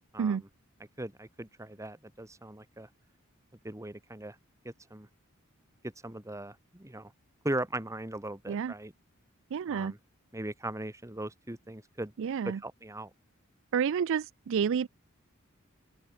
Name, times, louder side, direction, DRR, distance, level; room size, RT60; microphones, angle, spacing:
voice 1, 0.1-0.5 1.0-2.9 3.6-4.4 4.6-5.1 5.8-7.1 7.4-8.9 9.7-10.0 10.3-12.1 12.5-13.1, right 1 dB, 15° right, 1.8 m, -39 dB
voice 2, 9.5-9.9 12.2-12.6 13.7-14.9, right 7 dB, 65° right, 0.4 m, -29 dB
open air
head